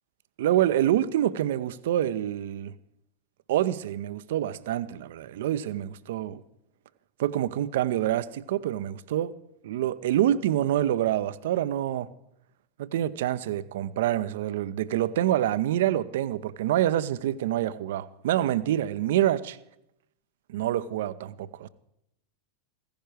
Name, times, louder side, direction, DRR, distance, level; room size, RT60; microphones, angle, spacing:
voice 1, 0.4-2.7 3.5-6.4 7.2-9.4 9.6-12.1 12.8-19.6 20.5-21.7, right 12 dB, 55° right, 0.6 m, -26 dB
16.0 x 15.5 x 4.8 m
figure-of-eight pair, 90°, 0 cm